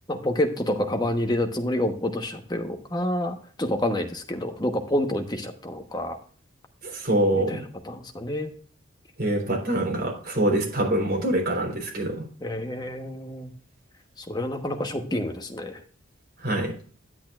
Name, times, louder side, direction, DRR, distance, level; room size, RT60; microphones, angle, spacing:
voice 1, 0.1-6.2 7.3-8.5 12.4-13.5 14.2-15.8, left 1 dB, 20° left, 5 dB, 1.1 m, -28 dB
voice 2, 6.8-7.6 9.2-12.2 16.4-16.7, right 1 dB, 50° right, 0 dB, 3.7 m, -25 dB
10.5 x 8.5 x 2.4 m, 0.44 s
head